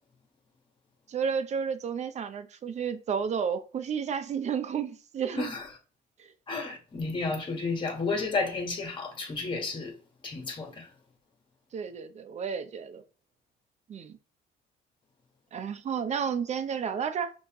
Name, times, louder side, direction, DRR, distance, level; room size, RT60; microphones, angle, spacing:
voice 1, 1.1-5.5 6.2-6.3 11.7-13.0 13.9-14.2 15.5-17.3, right 7 dB, 40° right, 0.6 m, -32 dB
voice 2, 6.5-10.0 10.2-10.9, left 3 dB, 30° left, 1.5 m, -32 dB
5.3 x 3.1 x 3.0 m
cardioid pair, 110°, 17 cm